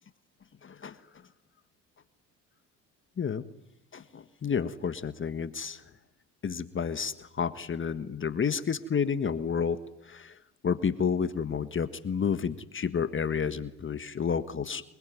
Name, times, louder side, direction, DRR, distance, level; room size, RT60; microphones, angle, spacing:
voice 1, 0.6-1.0 3.2-3.4 3.9-5.8 6.4-9.8 10.0-10.3 10.6-14.8, left 6 dB, 35° left, 12 dB, 1.5 m, -30 dB
25.0 x 22.0 x 9.4 m, 0.83 s
supercardioid pair, 75°, 37 cm